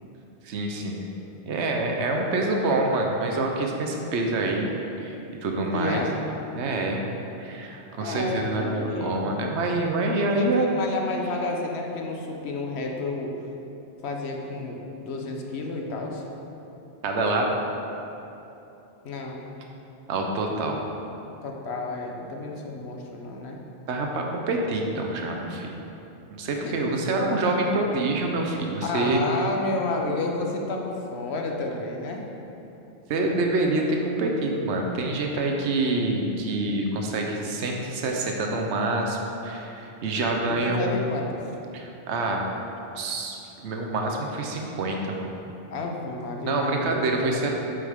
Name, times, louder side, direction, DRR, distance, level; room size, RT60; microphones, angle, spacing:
voice 1, 0.4-1.1 1.5-4.7 5.0-6.0 6.6-7.0 7.4-10.7 17.0-17.5 20.1-20.8 23.9-25.7 26.3-29.2 33.1-41.0 41.7-42.5 42.9-43.4 43.6-45.3 46.4-47.5, right 2 dB, 75° right, 1 dB, 1.1 m, -26 dB
voice 2, 5.7-6.2 8.0-9.3 10.3-13.3 14.0-16.2 19.0-19.4 21.4-23.6 26.6-26.8 28.8-32.3 40.5-41.4 45.7-47.0 47.3-47.5, left 2 dB, 70° left, 1 dB, 1.2 m, -31 dB
8.2 x 7.8 x 3.6 m, 2.9 s
omnidirectional pair, 1.2 m